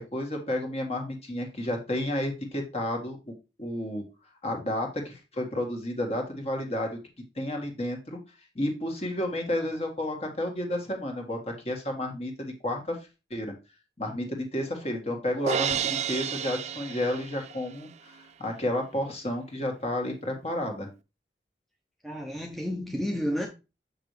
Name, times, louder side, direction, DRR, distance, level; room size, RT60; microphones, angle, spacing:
voice 1, 0.0-3.3 3.6-4.0 4.4-7.0 7.3-8.2 8.5-13.0 13.3-13.5 14.0-20.9, left 1 dB, 35° left, 1.7 m, -31 dB
Crash cymbal, 15.4-17.7, right 7 dB, 40° right, 0.3 m, -30 dB
voice 2, 22.0-23.5, equal, ahead, 0.7 m, -31 dB
6.7 x 5.8 x 3.2 m
head